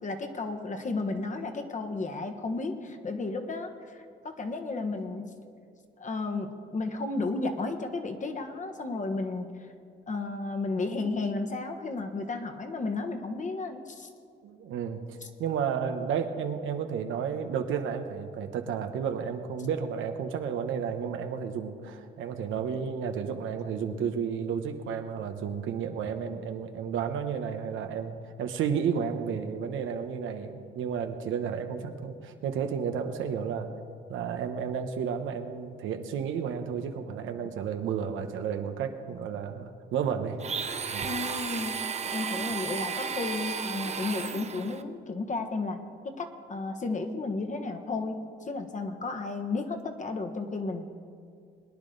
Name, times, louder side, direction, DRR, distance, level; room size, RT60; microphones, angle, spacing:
voice 1, 0.0-5.4 6.0-9.6 10.1-14.1 41.0-41.8 42.0-45.8 46.2-50.8, left 3 dB, 40° left, 5 dB, 1.4 m, -33 dB
voice 2, 14.4-33.7 34.1-40.4 40.9-41.1, right 7 dB, 80° right, 7 dB, 1.0 m, -32 dB
Domestic sounds home sounds, 40.4-44.8, right 5 dB, 35° right, 0.8 m, -33 dB
22.0 x 10.0 x 4.0 m, 2.2 s
cardioid pair, 90°, 20 cm